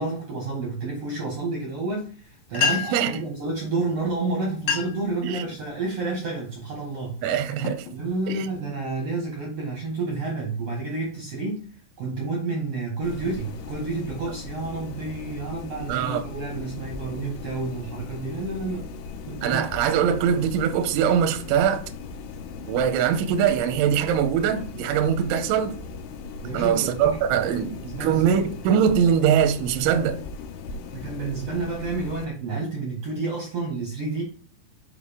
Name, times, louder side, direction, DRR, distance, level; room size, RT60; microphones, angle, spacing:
voice 1, 0.0-7.2 7.9-11.7 12.0-18.9 19.3-19.6 26.4-28.4 30.9-34.2, right 3 dB, 70° right, 1.5 m, -30 dB
sound 1, 2.3-2.4 2.5-3.1 4.0-4.1 4.5-5.1 5.6-5.9 6.6-6.8 7.4-8.6, left 7 dB, 75° left, 2.9 m, -28 dB
voice 2, 2.5-3.1 5.2-5.4 7.2-7.9 8.3-8.4 15.9-16.2 19.4-21.8 22.6-25.8 26.5-30.2, right 8 dB, 85° right, 2.8 m, -22 dB
sound 2, 13.0-32.3, left 4 dB, 90° left, 3.4 m, -38 dB
8.1 x 5.0 x 3.7 m
omnidirectional pair, 5.9 m